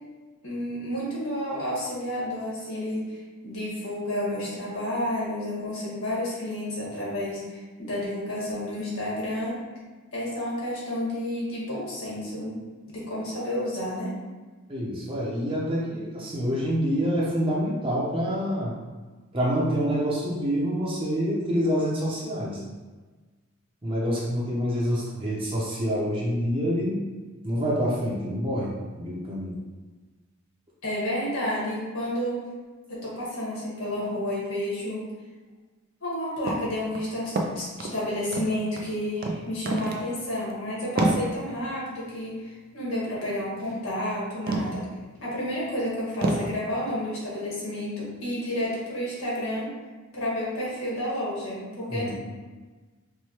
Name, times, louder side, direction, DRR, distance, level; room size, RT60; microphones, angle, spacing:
voice 1, 0.4-3.2 3.4-9.5 10.1-12.6 12.8-14.1 30.8-32.5 32.9-35.0 36.0-44.8 45.2-49.7 50.1-52.1, left 1 dB, 80° left, -6 dB, 1.5 m, -30 dB
voice 2, 14.7-18.7 19.3-22.6 23.8-27.0 27.4-29.6 51.9-52.1, equal, 25° right, -6 dB, 0.7 m, -27 dB
sound 1, 36.5-36.7 36.9-38.0 38.3-38.9 39.2-39.4 39.7-40.1 40.3-40.5 41.0-41.2 43.6-43.7 44.5-44.9 45.4-45.5 46.2-46.5, right 2 dB, 45° right, 0.4 m, -27 dB
4.7 x 2.2 x 3.0 m, 1.3 s
head